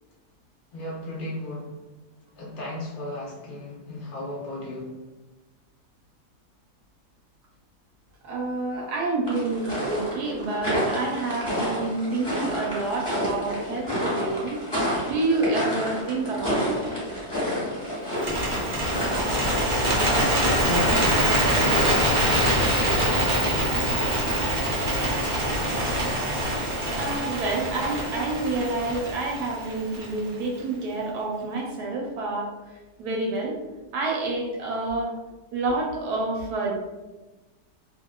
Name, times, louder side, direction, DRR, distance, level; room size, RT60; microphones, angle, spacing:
voice 1, 0.7-1.7 2.4-4.9 20.6-22.7 23.0-24.5, left 2 dB, 50° left, -5 dB, 0.6 m, -34 dB
voice 2, 8.2-14.6 15.1-16.8 26.9-32.5 33.0-33.6 33.9-35.1 35.5-36.7, right 2 dB, 80° right, 0 dB, 1.1 m, -28 dB
sound 1, 9.3-22.3, equal, 20° left, 1.0 m, -30 dB
Bird, 18.1-30.3, right 1 dB, 50° right, 0.5 m, -24 dB
2.8 x 2.5 x 2.2 m, 1.1 s
omnidirectional pair, 1.7 m